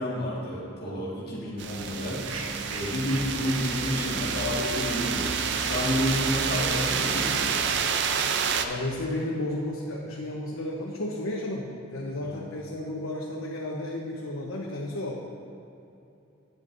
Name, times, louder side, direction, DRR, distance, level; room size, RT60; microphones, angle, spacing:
voice 1, 0.0-7.6 12.2-12.4, left 1 dB, 50° left, -6 dB, 1.7 m, -30 dB
sound 1, 1.6-8.6, right 7 dB, 60° right, 0.5 m, -29 dB
sound 2, 2.2-9.4, right 1 dB, 15° right, 1.1 m, -41 dB
sound 3, 2.2-7.3, right 3 dB, 85° right, 0.8 m, -43 dB
voice 2, 8.5-15.2, left 1 dB, 85° left, -3 dB, 0.9 m, -33 dB
11.0 x 9.3 x 2.6 m, 2.7 s
head